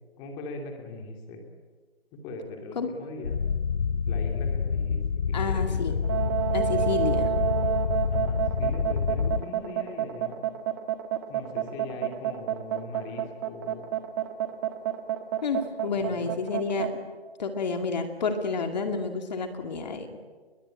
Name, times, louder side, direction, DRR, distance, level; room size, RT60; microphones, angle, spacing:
voice 1, 0.2-1.4 2.1-3.3 4.1-5.0 5.3-6.1 8.1-10.5 11.3-13.9 16.0-16.3, left 2 dB, 15° left, 3 dB, 2.7 m, -40 dB
sound 1, 3.2-9.4, left 6 dB, 65° left, 1.0 m, -27 dB
voice 2, 5.3-5.9 6.5-7.3 15.4-16.9 17.4-20.2, left 4 dB, 40° left, 5 dB, 2.4 m, -30 dB
sound 2, 6.0-16.9, right 11 dB, 20° right, 1.4 m, -29 dB
29.5 x 22.0 x 9.0 m, 1.4 s
hypercardioid pair, 160°, 32 cm